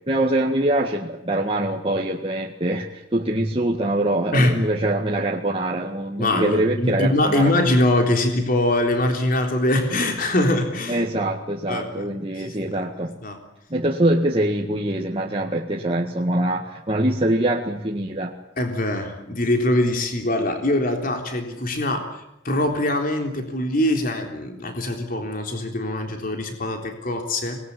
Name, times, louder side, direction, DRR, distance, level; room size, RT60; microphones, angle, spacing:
voice 1, 0.1-7.6 10.9-13.2 13.7-18.3, right 1 dB, 30° right, -1 dB, 1.8 m, -24 dB
voice 2, 6.2-11.0 11.7-12.1 12.4-12.9 13.2-13.4 18.6-27.6, left 1 dB, 45° left, 4 dB, 3.7 m, -23 dB
25.5 x 20.5 x 9.9 m, 0.86 s
head